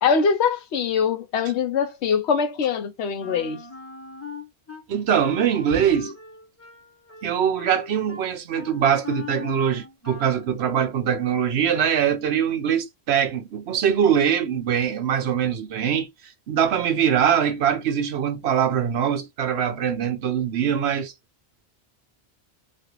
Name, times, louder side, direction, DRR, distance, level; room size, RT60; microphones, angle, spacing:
voice 1, 0.0-3.6, left 6 dB, 80° left, 1.0 m, -23 dB
Wind instrument woodwind instrument, 3.2-4.8 5.2-10.5, left 4 dB, 15° left, 0.7 m, -40 dB
voice 2, 4.9-6.1 7.2-16.1 16.5-21.1, right 8 dB, 70° right, 0.9 m, -22 dB
3.2 x 2.4 x 2.9 m
omnidirectional pair, 1.1 m